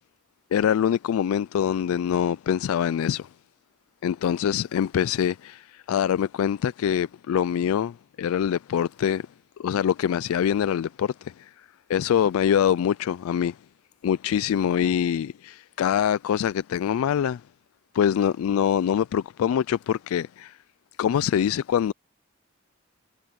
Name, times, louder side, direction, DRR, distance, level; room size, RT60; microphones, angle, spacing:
voice 1, 0.5-3.3 4.0-9.3 9.6-11.5 11.9-13.6 14.0-17.4 17.9-20.6 21.0-21.9, left 9 dB, 90° left, 0.3 m, -24 dB
head